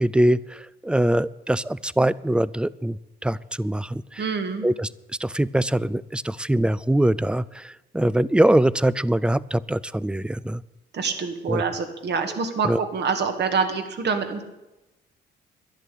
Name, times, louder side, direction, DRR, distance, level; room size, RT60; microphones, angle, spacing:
voice 1, 0.0-4.2 4.6-4.9 5.2-10.6 11.5-11.6 12.6-12.8, right 1 dB, 5° right, 20 dB, 0.4 m, -23 dB
voice 2, 4.2-4.7 10.9-14.4, right 5 dB, 60° right, 7 dB, 2.1 m, -26 dB
11.0 x 11.0 x 8.5 m, 0.99 s
cardioid pair, 90°, 20 cm